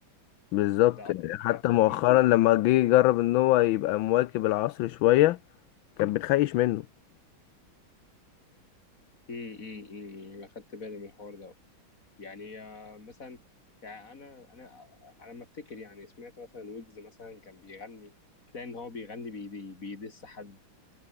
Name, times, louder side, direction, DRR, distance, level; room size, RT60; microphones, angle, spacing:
voice 1, 0.5-5.4 6.0-6.8, left 16 dB, 75° left, 1.4 m, -23 dB
voice 2, 9.3-11.5 12.2-13.4 13.8-18.2 18.5-20.6, left 4 dB, 40° left, 3.6 m, -43 dB
omnidirectional pair, 2.3 m